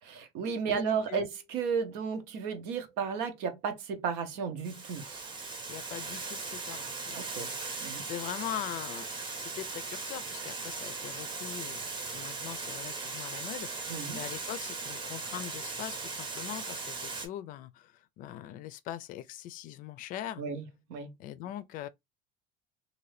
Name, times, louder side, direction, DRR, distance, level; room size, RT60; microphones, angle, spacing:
voice 1, 0.1-5.3 7.1-7.5 7.8-8.0 13.9-14.2 20.4-20.6 20.9-21.1, right 6 dB, 85° right, 0.8 m, -33 dB
voice 2, 0.7-1.3 5.7-7.2 8.0-11.8 12.1-20.4 21.2-21.9, left 12 dB, 55° left, 0.4 m, -41 dB
Water, 4.6-17.3, right 3 dB, 30° right, 0.8 m, -38 dB
2.6 x 2.6 x 3.2 m
cardioid pair, 150°, 16 cm